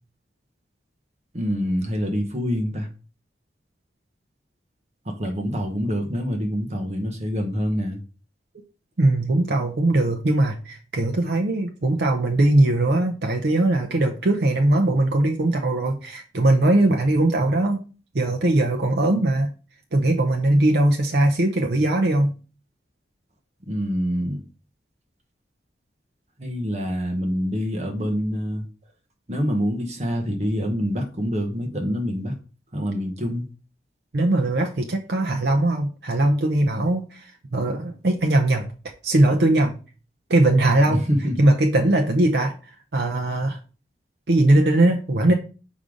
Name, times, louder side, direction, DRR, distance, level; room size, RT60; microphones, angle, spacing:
voice 1, 1.3-2.9 5.0-8.0 23.7-24.4 26.4-28.7 29.3-32.4 32.7-33.5 40.8-41.4, equal, 40° right, 3 dB, 1.2 m, -26 dB
voice 2, 9.0-17.8 18.1-19.5 19.9-22.3 34.1-38.7 39.0-39.8 40.3-41.0 41.4-43.6 44.3-45.3, right 1 dB, 65° right, 3 dB, 0.7 m, -20 dB
5.4 x 4.9 x 3.8 m, 0.35 s
head